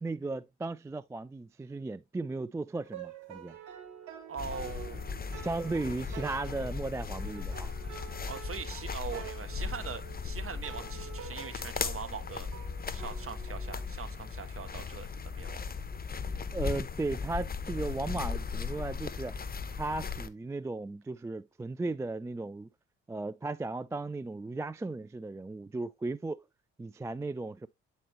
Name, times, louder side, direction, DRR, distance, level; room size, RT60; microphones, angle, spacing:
voice 1, 0.0-3.6 5.3-7.7 16.5-19.4 19.8-22.7 23.1-26.4 26.8-27.7, right 3 dB, 10° right, 0.3 m, -36 dB
sound 1, 2.7-13.9, right 9 dB, 65° right, 2.4 m, -48 dB
voice 2, 4.2-5.0 8.3-12.5 12.9-15.6, right 6 dB, 40° right, 1.3 m, -42 dB
sound 2, 4.4-20.3, left 5 dB, 30° left, 0.9 m, -37 dB
9.2 x 4.2 x 3.0 m
hypercardioid pair, 45°, 33 cm